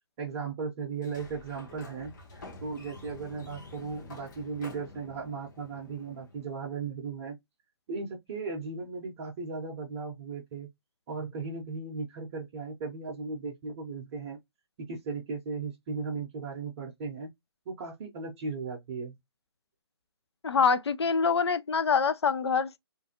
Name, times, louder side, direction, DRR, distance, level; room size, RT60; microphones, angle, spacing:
voice 1, 0.2-7.4 7.9-10.7 11.1-14.4 14.8-17.3 17.7-19.2, right 4 dB, 30° right, 0.6 m, -37 dB
Sliding door, 0.9-6.6, left 2 dB, 45° left, 0.9 m, -49 dB
voice 2, 20.4-22.8, left 5 dB, 75° left, 0.4 m, -25 dB
2.5 x 2.2 x 2.8 m
figure-of-eight pair, 145°, 14 cm